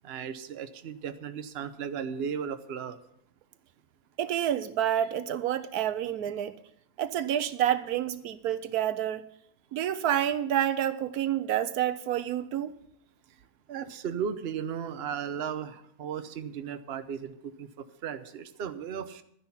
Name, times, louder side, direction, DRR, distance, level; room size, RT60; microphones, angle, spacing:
voice 1, 0.0-3.0 13.7-19.2, right 7 dB, 50° right, 9 dB, 1.0 m, -36 dB
voice 2, 4.2-6.6 7.0-9.2 9.7-12.7, right 11 dB, 80° right, 13 dB, 1.2 m, -28 dB
12.5 x 10.0 x 5.6 m, 0.70 s
omnidirectional pair, 1.6 m